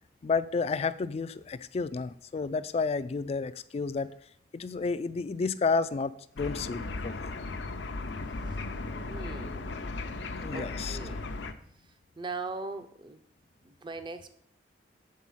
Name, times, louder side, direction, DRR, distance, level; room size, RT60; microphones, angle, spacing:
voice 1, 0.2-4.1 4.5-7.3 10.4-11.0, left 4 dB, 35° left, 14 dB, 0.3 m, -31 dB
sound 1, 6.4-11.5, left 3 dB, 85° left, 0.6 m, -36 dB
voice 2, 9.1-9.9 10.5-11.2 12.2-13.2 13.6-14.3, right 3 dB, 25° right, 9 dB, 0.5 m, -40 dB
7.6 x 4.0 x 5.5 m, 0.64 s
head